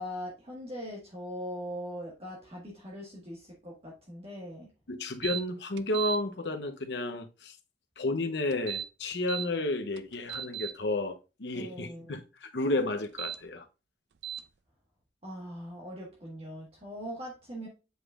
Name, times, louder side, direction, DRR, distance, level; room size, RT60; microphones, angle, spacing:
voice 1, 0.0-4.7 11.5-12.2 15.2-17.7, equal, 35° right, 1.5 m, -41 dB
voice 2, 4.9-7.6 8.0-13.7, left 2 dB, 75° left, 0.8 m, -32 dB
sound 1, 5.2-5.4 5.8-6.2 8.5-9.5 10.0-10.7 13.0-13.4 14.2-14.4, right 10 dB, 75° right, 0.4 m, -36 dB
7.9 x 5.1 x 2.4 m
head